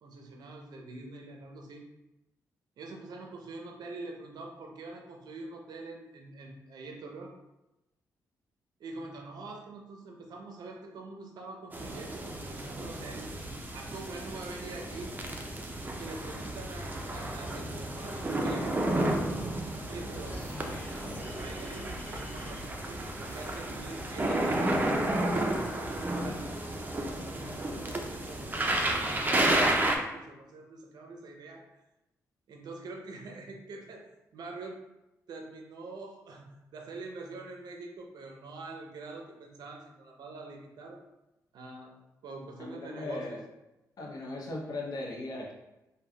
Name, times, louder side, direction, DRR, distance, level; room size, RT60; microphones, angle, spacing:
voice 1, 0.0-1.8 2.8-7.3 8.8-15.1 15.9-18.7 19.8-20.4 21.3-26.4 26.8-31.8 32.5-34.8 35.3-41.0 41.5-42.0 42.2-43.4, right 3 dB, 70° right, 2 dB, 0.5 m, -45 dB
sound 1, 11.7-30.0, right 1 dB, 25° right, 0.5 m, -32 dB
sound 2, 20.2-24.1, left 1 dB, 25° left, 0.7 m, -46 dB
voice 2, 42.6-43.4 44.0-45.5, left 2 dB, 60° left, -1 dB, 0.7 m, -38 dB
3.4 x 2.2 x 2.2 m, 0.96 s
supercardioid pair, 50°, 7 cm